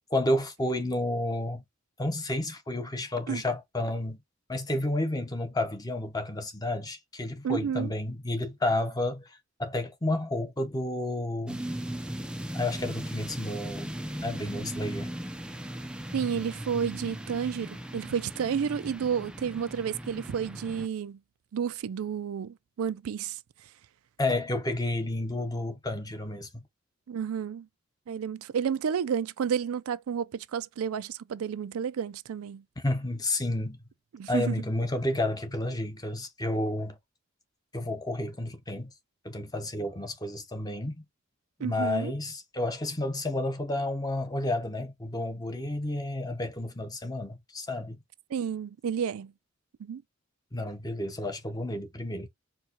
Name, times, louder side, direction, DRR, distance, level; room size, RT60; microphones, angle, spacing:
voice 1, 0.1-1.6 2.0-4.2 4.5-11.6 12.5-13.9 14.2-15.1 24.2-26.6 32.8-33.8 34.3-37.0 37.7-38.9 39.2-41.0 41.6-48.0 50.5-52.3, left 1 dB, 20° left, 0.7 m, -31 dB
voice 2, 7.4-7.9 16.1-21.2 21.5-23.4 27.1-27.7 28.1-32.6 34.1-34.6 41.6-42.1 48.3-49.3 49.8-50.0, right 7 dB, 85° right, 0.4 m, -31 dB
sound 1, 11.5-20.9, right 1 dB, 5° right, 0.3 m, -38 dB
4.6 x 2.3 x 2.7 m
head